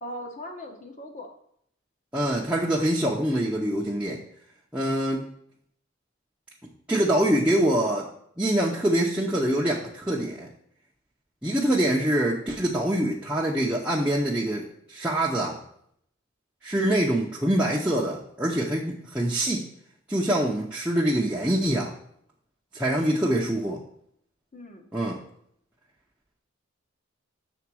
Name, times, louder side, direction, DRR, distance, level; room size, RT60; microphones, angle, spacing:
voice 1, 0.0-1.3 23.1-23.4 24.5-24.9, equal, 35° left, 3 dB, 1.1 m, -39 dB
voice 2, 2.1-4.2 4.7-5.3 6.9-8.1 8.4-10.5 11.4-15.6 16.6-19.6 20.1-21.9 22.7-23.8 24.9-25.2, right 1 dB, 5° right, -6 dB, 0.7 m, -25 dB
7.1 x 3.9 x 6.2 m, 0.68 s
head